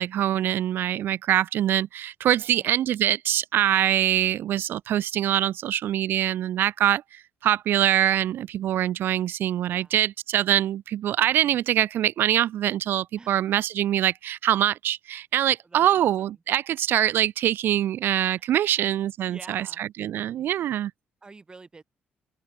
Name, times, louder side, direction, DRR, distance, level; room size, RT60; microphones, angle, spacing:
voice 1, 0.0-20.9, right 12 dB, 65° right, 0.4 m, -24 dB
voice 2, 2.4-2.7 9.7-10.0 13.2-13.3 15.6-16.3 18.7-18.8 19.3-19.8 21.2-21.8, right 3 dB, 20° right, 7.3 m, -48 dB
open air
cardioid pair, 120°, 4 cm